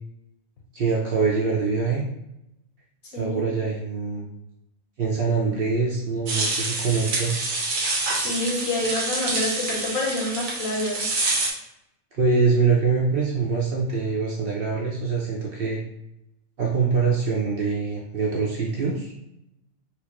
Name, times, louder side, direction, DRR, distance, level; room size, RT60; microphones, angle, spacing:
voice 1, 0.7-2.0 3.1-4.3 5.0-7.6 12.1-15.8 16.6-19.1, right 4 dB, 60° right, -3 dB, 0.6 m, -24 dB
voice 2, 3.1-3.4 8.1-11.1, left 2 dB, 85° left, -1 dB, 1.3 m, -27 dB
sound 1, 6.3-11.5, right 2 dB, 75° right, 1.2 m, -27 dB
4.3 x 2.0 x 2.9 m, 0.85 s
omnidirectional pair, 1.4 m